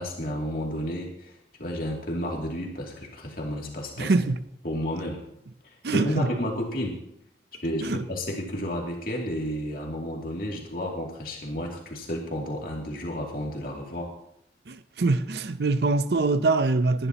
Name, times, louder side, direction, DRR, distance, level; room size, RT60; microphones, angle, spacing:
voice 1, 0.0-1.3 1.6-4.1 4.6-5.2 5.6-7.0 7.6-14.1, equal, 50° left, 2.6 m, -31 dB
voice 2, 4.0-4.4 5.8-6.3 7.8-8.0 14.7-17.1, right 3 dB, 65° right, 0.6 m, -24 dB
20.5 x 11.0 x 2.9 m
head